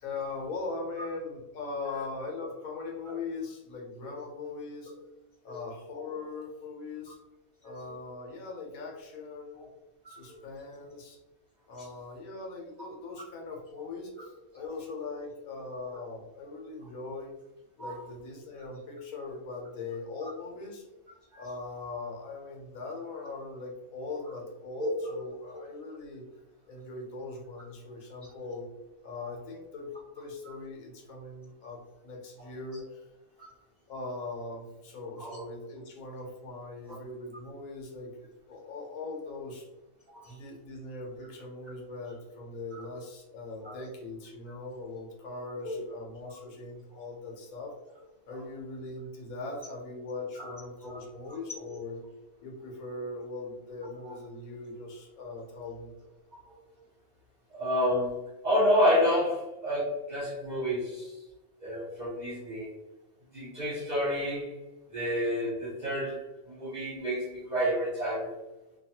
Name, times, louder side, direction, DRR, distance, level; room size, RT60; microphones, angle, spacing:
voice 1, 0.0-4.9 5.4-7.2 7.6-9.7 10.1-11.2 11.7-17.4 17.8-20.9 21.4-26.2 26.7-28.7 29.0-33.1 33.9-39.7 40.3-47.7 48.3-52.0 52.4-55.9, left 3 dB, 80° left, 0 dB, 1.2 m, -40 dB
voice 2, 57.5-61.2 61.6-62.7 63.3-64.6 64.9-68.3, equal, 50° right, -7 dB, 0.5 m, -30 dB
2.7 x 2.3 x 2.7 m, 0.98 s
omnidirectional pair, 1.5 m